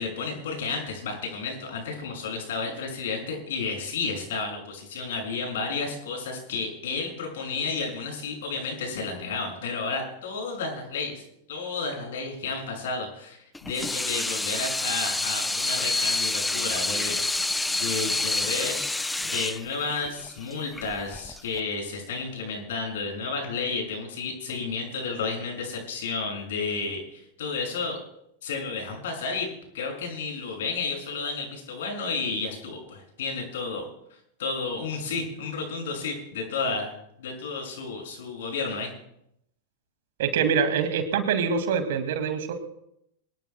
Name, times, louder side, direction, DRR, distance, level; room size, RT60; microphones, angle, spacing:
voice 1, 0.0-11.2 11.5-17.4 17.8-28.0 28.4-33.9 34.4-36.9 37.2-38.9, left 4 dB, 60° left, 1 dB, 6.6 m, -32 dB
Water tap faucet / Sink (filling or washing), 13.5-21.6, left 2 dB, 5° left, 0.5 m, -28 dB
voice 2, 40.2-42.5, right 6 dB, 55° right, 8 dB, 2.2 m, -25 dB
24.5 x 18.5 x 2.3 m, 0.77 s
figure-of-eight pair, 90°, 0 cm